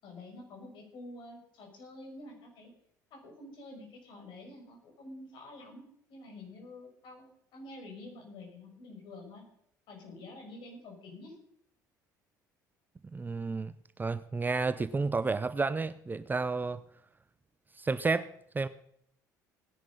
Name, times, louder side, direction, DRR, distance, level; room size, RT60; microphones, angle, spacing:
voice 1, 0.0-2.7 3.1-5.8 6.1-9.5 9.9-11.4, left 2 dB, 50° left, 1 dB, 6.8 m, -48 dB
voice 2, 13.1-13.7 14.0-16.8 17.8-18.3 18.5-18.7, right 4 dB, 20° right, 14 dB, 0.7 m, -31 dB
18.5 x 11.0 x 5.7 m, 0.69 s
figure-of-eight pair, 60°, 10 cm